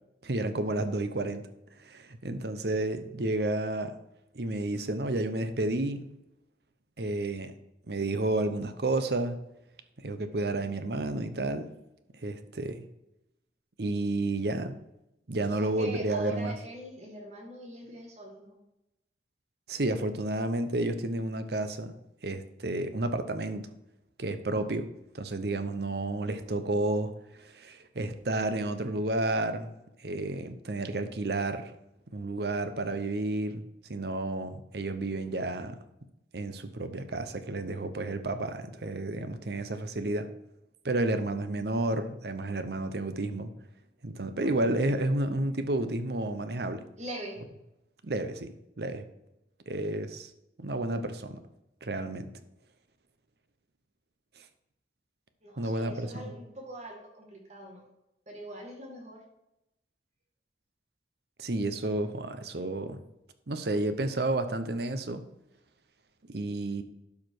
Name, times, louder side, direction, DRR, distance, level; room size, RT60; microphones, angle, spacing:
voice 1, 0.2-1.5 1.8-3.9 4.3-6.1 7.0-7.5 7.9-9.4 10.0-11.7 12.1-12.8 13.8-14.8 15.3-16.5 19.7-21.9 22.2-23.7 24.2-24.9 25.1-29.7 30.0-31.7 32.1-35.8 36.3-40.3 40.8-43.5 44.0-46.8 48.0-49.1 49.7-50.3 50.6-51.4 51.8-52.3 54.4-54.5 55.6-56.3 61.4-63.0 63.5-65.2 66.3-66.8, right 2 dB, 65° right, 10 dB, 0.8 m, -31 dB
voice 2, 15.4-18.5 44.4-45.0 47.0-47.4 55.4-57.8 58.3-59.2, right 1 dB, 40° right, 0 dB, 1.8 m, -42 dB
12.0 x 4.9 x 4.7 m, 0.88 s
head